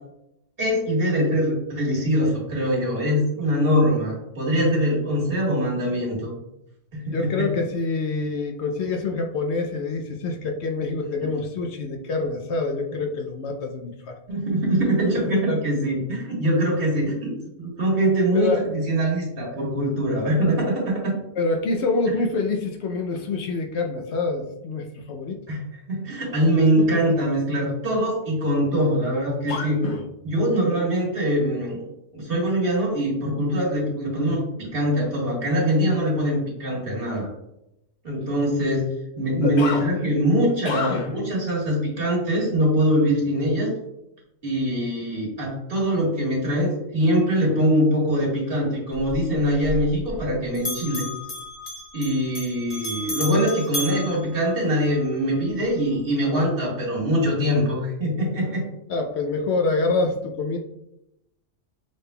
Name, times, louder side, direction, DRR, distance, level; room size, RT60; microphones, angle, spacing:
voice 1, 0.6-6.3 6.9-7.5 14.3-17.3 17.6-21.2 22.1-22.2 25.5-29.8 30.2-37.3 38.0-38.9 39.2-43.7 44.4-51.1 51.9-58.6, equal, 50° right, -4 dB, 1.6 m, -23 dB
voice 2, 7.1-14.2 15.3-15.6 18.3-18.6 21.4-25.4 26.8-27.0 29.5-30.1 39.4-39.9 40.6-41.1 58.9-60.6, left 3 dB, 65° left, 3 dB, 0.8 m, -26 dB
Bell, 48.9-50.3 50.5-55.0, left 1 dB, 45° left, 1.2 m, -33 dB
6.3 x 3.5 x 2.2 m, 0.85 s
omnidirectional pair, 1.3 m